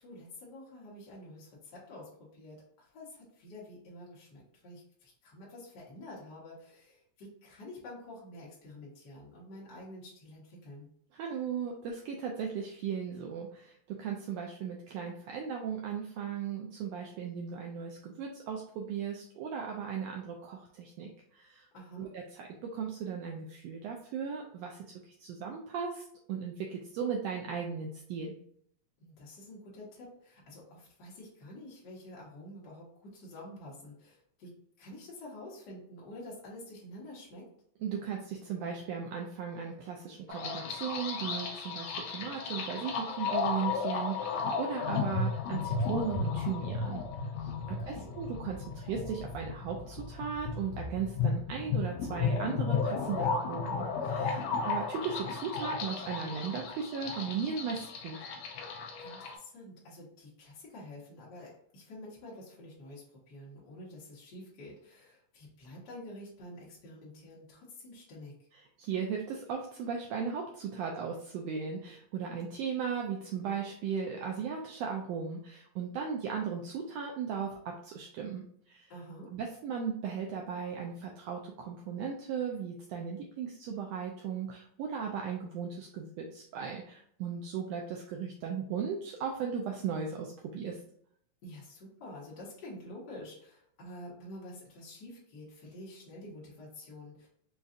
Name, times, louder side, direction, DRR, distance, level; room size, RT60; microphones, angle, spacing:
voice 1, 0.0-10.9 21.7-22.1 29.0-34.5 34.8-37.5 47.7-48.1 59.0-68.3 78.9-79.3 91.4-97.3, left 1 dB, 50° left, -6 dB, 1.4 m, -48 dB
voice 2, 11.1-21.7 22.0-28.4 37.8-47.0 47.4-47.5 47.9-58.2 68.8-78.9 79.3-90.8, right 6 dB, 85° right, 0 dB, 1.4 m, -37 dB
sound 1, 40.3-59.3, left 4 dB, 80° left, 1.7 m, -34 dB
5.2 x 2.4 x 2.5 m, 0.65 s
omnidirectional pair, 3.4 m